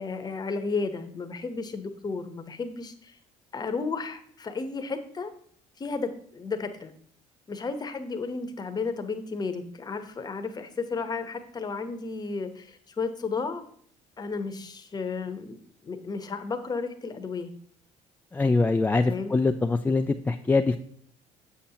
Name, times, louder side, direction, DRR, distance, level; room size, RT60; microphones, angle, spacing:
voice 1, 0.0-3.2 3.5-5.3 5.8-6.9 7.5-13.6 14.2-15.6 15.8-17.5 19.1-19.3, left 4 dB, 30° left, 8 dB, 0.9 m, -33 dB
voice 2, 18.3-20.8, left 3 dB, 15° left, 5 dB, 0.3 m, -23 dB
7.2 x 7.1 x 2.9 m, 0.63 s
supercardioid pair, 95°, 14 cm